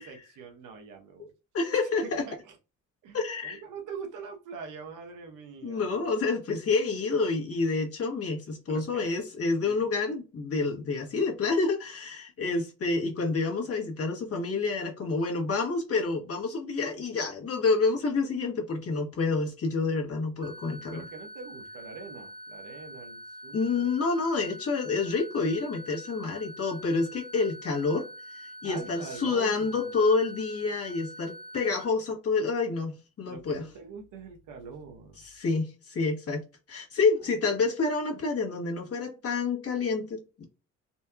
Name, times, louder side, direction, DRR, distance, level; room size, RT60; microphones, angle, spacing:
voice 1, 0.0-1.3 2.3-2.6 3.0-3.2 3.4-5.9 8.7-9.1 9.6-9.8 20.9-23.9 28.6-29.9 33.3-35.2, right 5 dB, 90° right, 1.1 m, -44 dB
voice 2, 1.5-2.2 3.1-3.6 5.6-21.0 23.5-33.7 35.2-40.5, left 4 dB, 50° left, 1.5 m, -28 dB
sound 1, 20.4-31.9, equal, 15° right, 0.7 m, -45 dB
4.2 x 2.7 x 2.3 m
cardioid pair, 90°, 30 cm